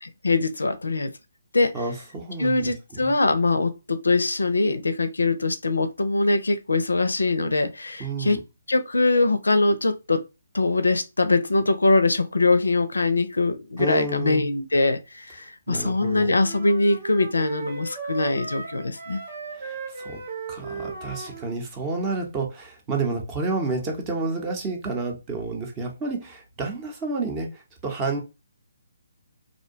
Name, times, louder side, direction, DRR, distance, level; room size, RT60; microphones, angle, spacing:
voice 1, 0.2-1.1 1.5-1.8 2.4-8.4 8.7-10.2 10.5-19.2, left 3 dB, 85° left, 0.4 m, -22 dB
voice 2, 1.7-3.1 8.0-8.4 13.8-14.5 15.7-16.3 19.5-20.2 20.5-28.2, right 3 dB, 20° right, 0.7 m, -30 dB
sound 1, 16.4-21.5, right 5 dB, 50° right, 0.9 m, -36 dB
2.6 x 2.1 x 2.6 m
figure-of-eight pair, 145°, 0 cm